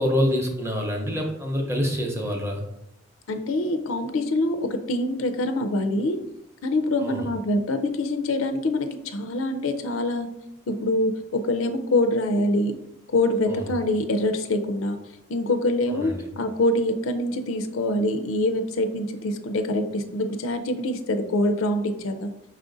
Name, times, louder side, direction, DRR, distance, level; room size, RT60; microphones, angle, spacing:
voice 1, 0.0-2.6 7.0-7.3 13.5-13.7 15.9-16.2, equal, 15° right, 2 dB, 0.6 m, -26 dB
voice 2, 3.3-6.2 6.6-10.3 10.7-12.8 13.1-15.0 15.3-22.3, left 1 dB, 85° left, 8 dB, 0.5 m, -25 dB
5.3 x 2.5 x 3.8 m, 0.84 s
head